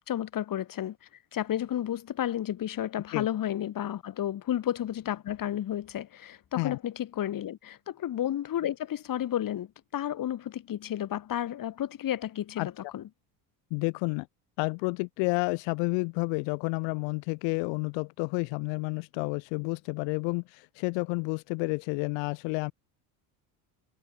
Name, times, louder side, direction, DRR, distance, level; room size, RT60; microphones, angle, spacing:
voice 1, 0.0-13.1, left 11 dB, 50° left, 5.7 m, -32 dB
voice 2, 13.7-14.3 14.6-22.7, left 34 dB, 75° left, 2.9 m, -30 dB
supercardioid pair, 100°, 44 cm